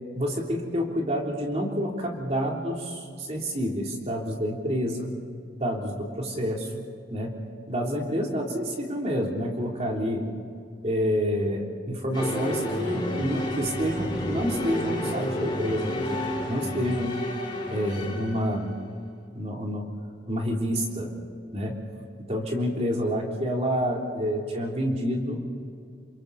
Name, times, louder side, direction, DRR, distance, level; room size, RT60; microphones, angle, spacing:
voice 1, 0.1-5.1 5.6-7.4 7.7-10.3 10.8-16.2 16.5-17.2 17.7-18.7 19.3-19.9 20.3-21.1 21.5-21.8 22.2-25.4, equal, 35° right, -1 dB, 3.6 m, -28 dB
sound 1, 12.1-18.7, left 1 dB, 25° left, 4.7 m, -31 dB
29.0 x 27.0 x 4.2 m, 2.3 s
head